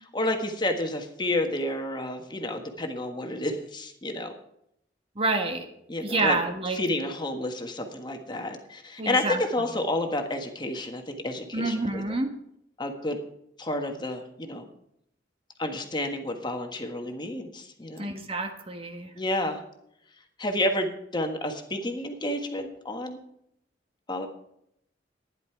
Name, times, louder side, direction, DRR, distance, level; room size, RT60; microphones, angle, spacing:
voice 1, 0.1-4.3 5.9-6.4 6.7-12.0 12.8-13.2 13.6-14.7 15.6-18.1 19.1-19.6 20.4-23.2 24.1-24.3, left 1 dB, 25° left, 4 dB, 1.4 m, -30 dB
voice 2, 5.2-5.7 6.0-6.8 9.0-9.4 11.5-12.3 18.0-19.1, right 2 dB, 30° right, 5 dB, 1.4 m, -28 dB
12.0 x 10.5 x 4.7 m, 0.75 s
head